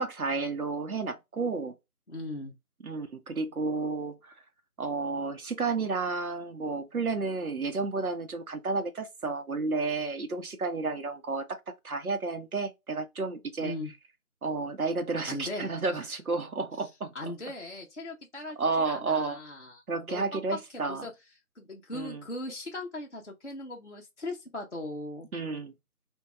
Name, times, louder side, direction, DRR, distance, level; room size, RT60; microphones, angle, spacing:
voice 1, 0.0-1.8 2.8-4.3 4.8-11.6 11.8-13.7 14.4-17.3 18.6-19.4 19.9-21.0 21.9-22.2 25.3-25.7, right 3 dB, 70° right, 0.7 m, -31 dB
voice 2, 2.1-2.5 13.6-13.9 15.3-16.0 17.1-18.6 18.9-19.8 20.1-20.2 20.7-21.1 21.6-25.3, left 2 dB, 55° left, 0.5 m, -39 dB
2.9 x 2.2 x 2.3 m
figure-of-eight pair, 180°, 45 cm